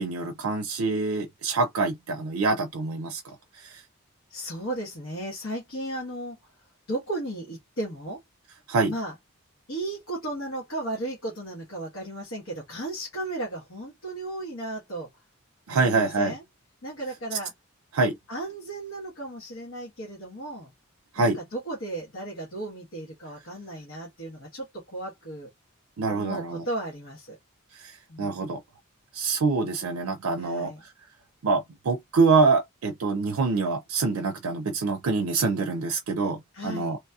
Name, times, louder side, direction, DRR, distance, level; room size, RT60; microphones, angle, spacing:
voice 1, 0.0-3.8 8.7-8.9 15.7-16.3 17.9-18.2 21.1-21.4 26.0-26.7 27.7-28.6 29.1-30.9 31.4-37.0, right 4 dB, 90° right, 0.4 m, -25 dB
voice 2, 4.3-6.4 6.9-8.2 8.9-9.1 9.7-15.1 15.7-16.4 16.8-17.5 18.3-20.7 21.2-25.5 26.1-27.4 28.1-28.5 30.4-30.8 36.5-37.0, right 1 dB, 70° left, 1.2 m, -35 dB
2.9 x 2.6 x 2.3 m
head